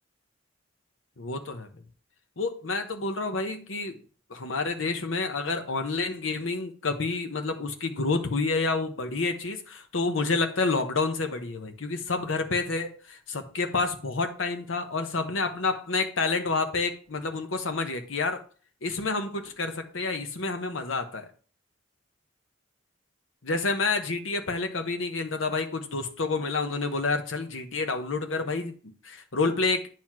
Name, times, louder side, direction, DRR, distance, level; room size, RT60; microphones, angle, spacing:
voice 1, 1.2-1.7 2.4-4.0 4.3-18.4 18.8-21.3 23.4-29.9, left 3 dB, 80° left, 0.9 m, -29 dB
9.1 x 3.0 x 6.0 m
head